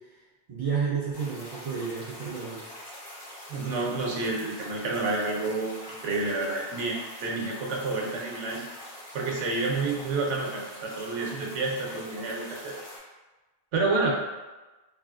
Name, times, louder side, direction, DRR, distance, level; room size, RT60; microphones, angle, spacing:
voice 1, 0.5-2.6, right 6 dB, 60° right, -7 dB, 0.3 m, -31 dB
Ambiance River Flow Medium Loop Stereo, 1.1-13.0, left 1 dB, 55° left, 1.3 m, -44 dB
voice 2, 3.5-8.7 9.1-12.7 13.7-14.1, right 3 dB, 85° right, -1 dB, 0.9 m, -29 dB
3.3 x 2.4 x 2.4 m, 1.2 s
omnidirectional pair, 1.2 m